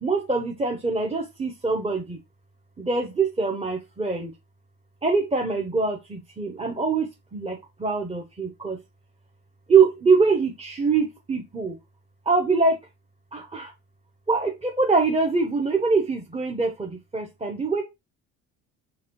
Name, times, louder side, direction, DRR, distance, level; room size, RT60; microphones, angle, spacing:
voice 1, 0.0-2.2 2.8-4.3 5.0-8.8 9.7-11.8 12.2-12.8 13.3-13.7 14.3-17.8, right 4 dB, 15° right, 0.9 m, -24 dB
4.0 x 2.9 x 3.0 m
supercardioid pair, 70°, 36 cm